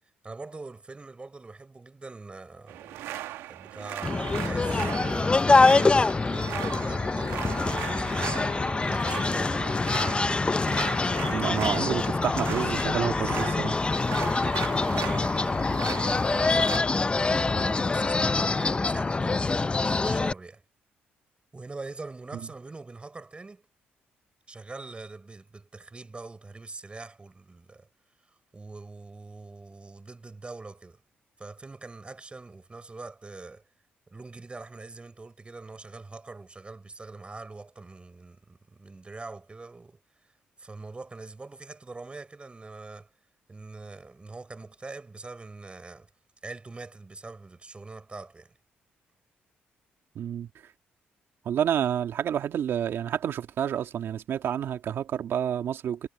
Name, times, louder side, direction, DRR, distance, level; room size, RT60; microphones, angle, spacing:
voice 1, 0.2-8.4 8.9-9.7 14.1-16.9 17.6-20.6 21.5-23.7 24.5-27.9 28.5-31.0 31.4-33.6 34.1-43.1 43.5-46.1 46.4-48.6, right 3 dB, 25° right, 4.9 m, -43 dB
sound 1, 2.7-16.8, right 14 dB, 90° right, 1.4 m, -38 dB
sound 2, 4.0-20.3, left 3 dB, 25° left, 0.7 m, -25 dB
voice 2, 11.3-13.8 50.2-50.5 51.5-56.0, right 9 dB, 70° right, 2.4 m, -29 dB
cardioid pair, 70°, 4 cm